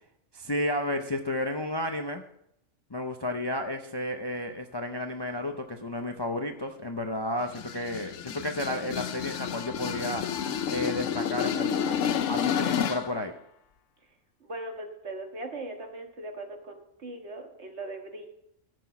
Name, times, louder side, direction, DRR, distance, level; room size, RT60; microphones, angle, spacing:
voice 1, 0.3-2.2 2.9-10.2 10.7-12.0 12.3-13.3, left 1 dB, 25° left, 5 dB, 0.5 m, -32 dB
sound 1, 7.4-13.2, left 8 dB, 75° left, 1.0 m, -30 dB
voice 2, 14.4-18.3, right 2 dB, 60° right, 3 dB, 1.8 m, -39 dB
14.0 x 6.3 x 5.8 m, 0.76 s
omnidirectional pair, 1.3 m